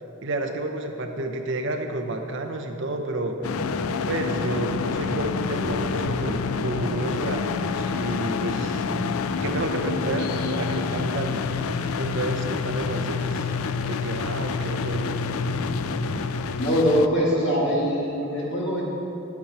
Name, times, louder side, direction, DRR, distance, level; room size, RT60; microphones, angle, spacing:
voice 1, 0.2-3.4 4.1-13.5 13.8-15.2, right 2 dB, 55° right, 4 dB, 0.8 m, -30 dB
sound 1, 3.4-17.1, left 6 dB, 75° left, 0.4 m, -28 dB
sound 2, 3.4-16.5, equal, 30° left, 0.8 m, -34 dB
voice 2, 16.6-18.8, equal, 55° left, -4 dB, 2.3 m, -22 dB
10.5 x 8.6 x 4.3 m, 2.8 s
head